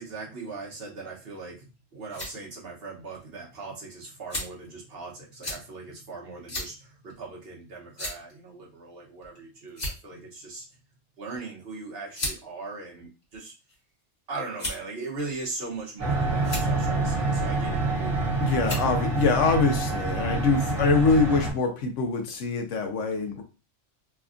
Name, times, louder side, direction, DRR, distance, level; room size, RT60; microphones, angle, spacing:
voice 1, 0.0-10.7 11.2-13.5 14.3-18.4, right 3 dB, 55° right, -2 dB, 1.0 m, -39 dB
sound 1, 1.8-2.3 3.1-3.2 4.3-4.7 5.4-5.6 6.5-6.7 7.1-7.2 7.9-8.3 9.2-9.4 9.7-10.2 11.3-11.4 12.1-12.4 13.2-13.8 14.6-14.9 15.7-16.0 16.4-16.7 17.9-18.2 18.6-18.9, left 1 dB, 35° left, 1.3 m, -34 dB
sound 2, 16.0-21.5, right 3 dB, 75° right, 1.3 m, -27 dB
voice 2, 18.4-23.4, left 4 dB, 75° left, 4 dB, 1.0 m, -24 dB
3.3 x 2.2 x 2.4 m, 0.31 s
omnidirectional pair, 1.3 m